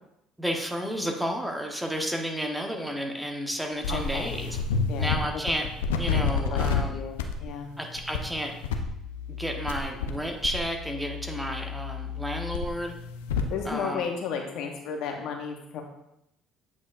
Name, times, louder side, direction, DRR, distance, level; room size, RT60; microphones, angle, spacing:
voice 1, 0.4-4.6 5.0-5.7 6.0-6.9 7.8-8.6 9.3-12.9 13.6-14.1, equal, 5° right, 2 dB, 1.2 m, -31 dB
sound 1, 3.8-5.2 5.5-6.8 7.2-7.5 8.0-8.2 8.6-10.2 10.4-13.5, left 5 dB, 80° left, 0.5 m, -29 dB
voice 2, 3.9-4.3 4.9-5.4 6.5-7.7 13.5-15.8, left 6 dB, 65° left, 2 dB, 1.0 m, -34 dB
8.3 x 5.2 x 2.6 m, 0.81 s
hypercardioid pair, 60°, 0 cm